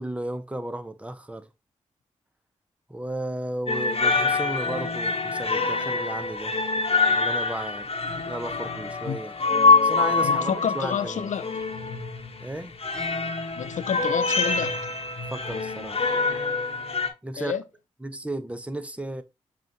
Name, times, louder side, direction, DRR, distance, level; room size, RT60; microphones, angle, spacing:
voice 1, 0.0-1.5 2.9-6.6 7.1-7.9 8.3-9.3 9.8-11.3 12.4-12.7 15.3-16.0 17.2-17.5 18.0-19.2, right 1 dB, 10° right, 0.8 m, -34 dB
sound 1, 3.7-17.1, left 3 dB, 50° left, 1.2 m, -25 dB
voice 2, 10.2-11.4 13.6-14.9 17.4-17.6, left 8 dB, 70° left, 0.6 m, -29 dB
7.3 x 2.5 x 2.8 m
supercardioid pair, 40°, 13 cm